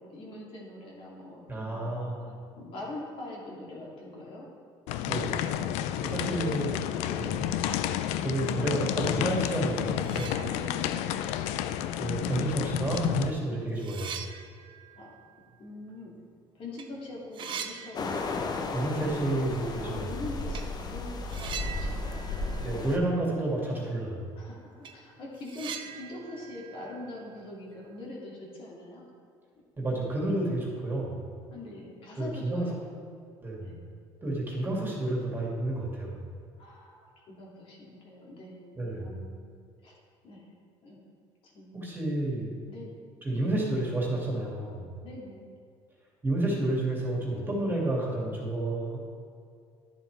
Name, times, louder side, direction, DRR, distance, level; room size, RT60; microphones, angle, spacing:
voice 1, 0.0-2.1 2.6-4.5 7.0-7.3 10.4-11.2 13.5-13.7 15.0-15.1 15.6-16.1 16.5-18.1 19.8-22.8 24.3-29.1 31.5-33.1 33.6-33.8 36.6-39.5 39.8-39.9 40.2-40.5 40.8-41.1 41.4-41.7 42.7-42.9 45.0-45.5, left 2 dB, 55° left, -4 dB, 2.4 m, -43 dB
voice 2, 1.5-2.3 5.0-5.4 6.0-6.8 7.2-7.5 8.2-10.3 12.0-14.2 18.7-20.1 22.6-24.2 29.8-31.2 32.2-32.7 33.4-33.7 34.2-36.2 38.8-39.2 41.7-42.5 43.2-44.9 46.2-49.0, right 2 dB, 20° right, -3 dB, 2.3 m, -30 dB
sound 1, 4.9-13.3, left 11 dB, 80° left, 0.4 m, -30 dB
sound 2, 9.6-9.7 10.0-11.0 11.4-11.5 12.4-12.5 12.9-16.4 16.6-16.9 17.1-18.7 19.0-19.1 20.5-20.8 21.3-23.4 23.7-23.8 24.2-24.3 24.6-27.9, right 7 dB, 45° right, 0.7 m, -43 dB
sound 3, 17.9-23.0, left 3 dB, 40° left, 0.8 m, -34 dB
11.0 x 7.3 x 3.3 m, 2.2 s
cardioid pair, 110°, 11 cm